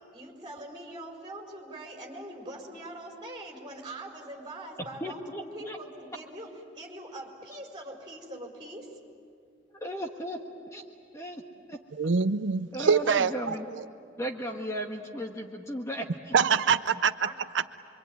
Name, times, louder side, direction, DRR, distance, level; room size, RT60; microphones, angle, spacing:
voice 1, 0.1-9.0 17.2-17.3, right 1 dB, 25° right, 0 dB, 4.5 m, -43 dB
voice 2, 5.0-5.8 9.7-10.4 10.7-10.8 11.1-11.4 11.7-11.8 12.7-13.7 14.2-16.3, right 1 dB, 15° left, 2 dB, 1.4 m, -35 dB
voice 3, 12.0-13.8 16.3-17.1, right 5 dB, 85° right, 11 dB, 0.6 m, -25 dB
26.0 x 24.0 x 9.3 m, 2.3 s
head